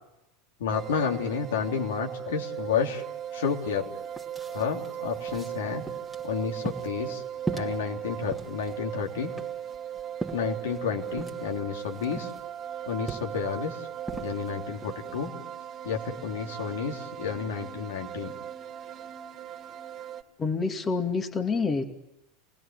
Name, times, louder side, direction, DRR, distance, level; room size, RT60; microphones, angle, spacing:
voice 1, 0.6-3.0 3.3-3.9 4.5-5.8 6.2-7.2 7.5-9.3 10.3-12.3 12.9-13.8 14.2-15.4 15.8-18.3, left 6 dB, 70° left, 2 dB, 3.3 m, -31 dB
sound 1, 0.7-20.2, right 10 dB, 35° right, 2.6 m, -38 dB
sound 2, 3.4-3.5 3.8-15.3, right 2 dB, 5° right, 2.4 m, -41 dB
voice 2, 20.4-21.8, left 4 dB, 25° left, 5 dB, 2.4 m, -27 dB
27.5 x 20.0 x 8.9 m, 0.92 s
figure-of-eight pair, 85°, 0 cm